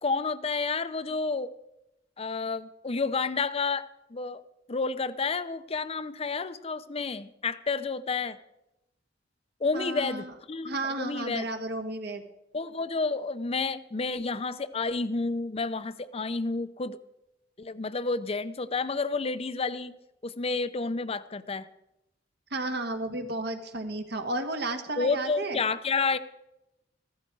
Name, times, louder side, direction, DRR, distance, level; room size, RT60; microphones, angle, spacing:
voice 1, 0.0-1.5 2.2-4.4 4.7-8.4 9.6-11.5 12.5-17.0 17.6-20.0 20.2-21.7 25.0-26.2, left 4 dB, 35° left, 14 dB, 0.6 m, -30 dB
voice 2, 9.7-10.3 10.6-12.2 22.5-25.6, right 2 dB, 60° right, 6 dB, 1.5 m, -33 dB
15.0 x 13.5 x 4.7 m, 0.89 s
head